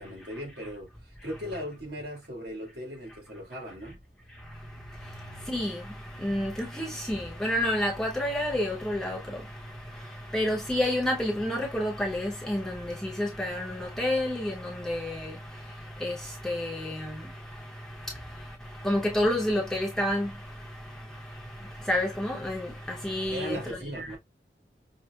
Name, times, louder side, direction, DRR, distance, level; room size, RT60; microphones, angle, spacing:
voice 1, 0.0-4.0 23.3-24.2, equal, 75° right, 1.9 m, -38 dB
voice 2, 5.1-9.6 9.9-15.4 16.0-17.3 18.0-18.1 18.8-20.4 21.6-24.2, left 1 dB, 5° left, 0.7 m, -30 dB
5.5 x 2.0 x 2.3 m
head